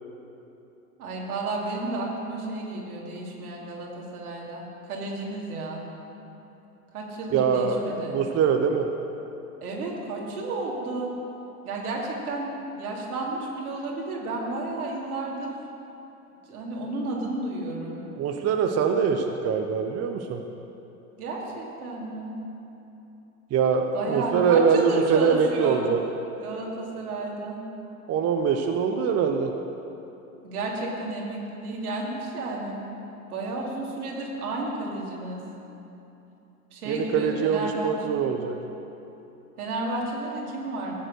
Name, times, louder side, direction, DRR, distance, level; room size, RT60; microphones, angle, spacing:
voice 1, 1.0-5.8 6.9-8.2 9.6-11.1 11.6-12.5 12.8-15.5 16.5-18.0 21.2-22.4 23.9-25.9 26.4-27.6 30.4-32.8 33.3-35.4 36.7-38.2 39.6-40.9, right 2 dB, 80° right, -2 dB, 2.8 m, -32 dB
voice 2, 7.3-8.9 18.2-20.4 23.5-26.0 28.1-29.5 36.9-38.5, right 6 dB, 35° right, 4 dB, 0.9 m, -23 dB
15.0 x 7.7 x 6.5 m, 2.9 s
hypercardioid pair, 85°, 44 cm